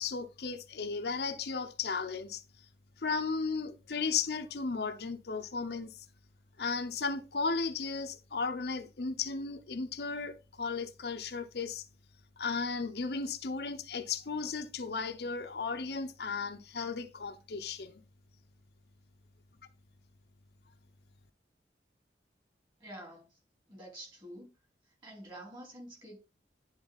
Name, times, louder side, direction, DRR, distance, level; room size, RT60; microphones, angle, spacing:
voice 1, 0.0-2.4 3.0-5.9 6.6-11.8 12.4-18.0, left 4 dB, 65° left, 0.7 m, -35 dB
voice 2, 22.8-23.4 23.7-24.5 24.8-26.2, right 1 dB, 25° right, 3.5 m, -48 dB
10.5 x 3.9 x 4.0 m
head